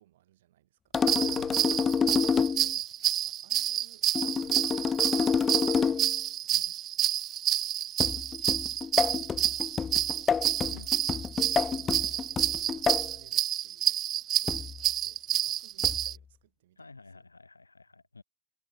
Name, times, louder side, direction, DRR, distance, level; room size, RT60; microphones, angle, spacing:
voice 1, 0.0-2.5 3.2-6.7 8.2-9.7 10.1-10.4 11.0-17.2, right 14 dB, 70° right, 7.9 m, -62 dB
sound 1, 0.9-2.7 4.2-6.2 8.0-13.1 14.5-14.8 15.8-16.2, left 6 dB, 30° left, 0.3 m, -29 dB
sound 2, 1.0-16.1, right 11 dB, 45° right, 0.6 m, -29 dB
voice 2, 1.2-2.1 2.6-2.9 6.5-6.7 10.7-10.9 16.8-18.2, left 3 dB, 85° left, 2.2 m, -51 dB
figure-of-eight pair, 65°, 0 cm